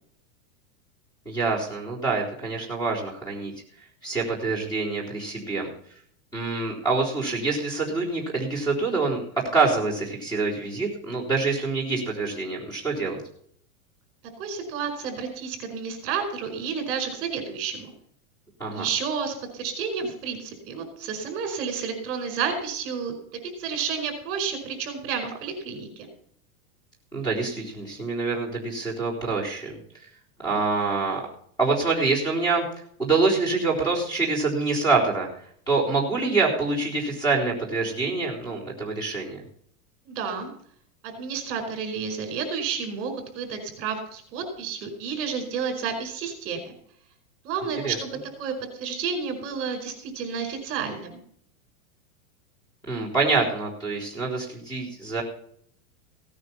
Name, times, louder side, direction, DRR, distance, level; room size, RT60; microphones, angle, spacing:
voice 1, 1.3-3.5 4.0-5.7 6.3-9.3 9.5-13.2 18.6-18.9 27.1-30.1 30.4-31.2 31.6-32.6 33.0-35.3 35.7-39.4 47.8-48.0 52.9-55.2, right 3 dB, 10° left, -2 dB, 3.9 m, -26 dB
voice 2, 14.4-17.9 18.7-26.1 40.0-40.5 41.0-46.7 47.4-48.1 48.4-51.2, right 6 dB, 30° right, 5 dB, 4.8 m, -31 dB
17.0 x 9.6 x 5.7 m, 0.63 s
supercardioid pair, 160°, 43 cm